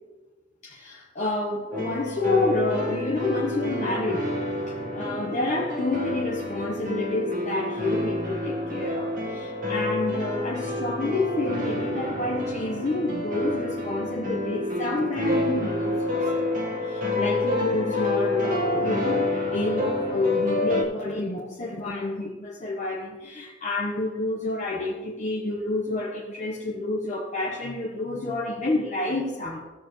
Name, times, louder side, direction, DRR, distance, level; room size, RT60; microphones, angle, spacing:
voice 1, 0.6-4.4 4.8-16.5 16.8-29.6, left 2 dB, 40° left, -2 dB, 1.1 m, -29 dB
sound 1, 1.7-20.8, left 2 dB, 45° right, 1.5 m, -28 dB
17.0 x 6.8 x 3.2 m, 1.2 s
head